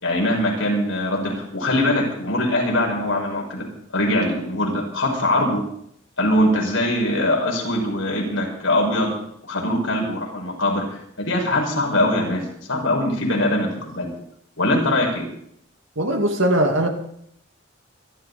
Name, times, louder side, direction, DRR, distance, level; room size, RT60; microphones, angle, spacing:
voice 1, 0.0-3.7 3.9-5.6 6.2-9.2 9.4-14.1 14.6-15.3, left 1 dB, 75° left, -1 dB, 5.8 m, -22 dB
voice 2, 16.0-16.9, right 1 dB, 70° right, 4 dB, 2.3 m, -20 dB
24.5 x 12.5 x 4.2 m, 0.70 s
head